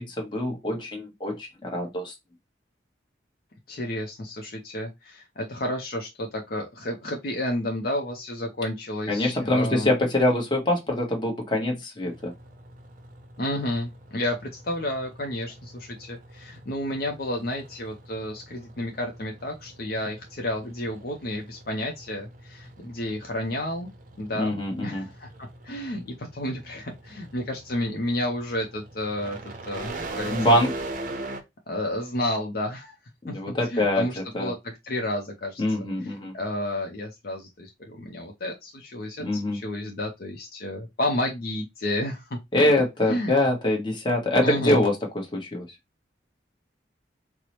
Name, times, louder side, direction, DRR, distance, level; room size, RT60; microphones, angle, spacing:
voice 1, 0.0-2.1 9.1-12.3 24.3-25.1 30.3-30.7 33.2-34.0 34.3-34.5 35.6-36.3 39.2-39.6 42.5-45.6, left 1 dB, 25° left, 1.0 m, -24 dB
voice 2, 3.7-10.0 13.4-23.9 24.2-25.3 25.6-29.4 29.7-30.6 31.7-32.9 33.3-42.4 43.1-43.4 44.4-44.8, left 1 dB, 55° left, 0.6 m, -31 dB
sound 1, 12.0-31.4, right 2 dB, 45° right, 0.6 m, -42 dB
4.5 x 2.0 x 2.9 m
head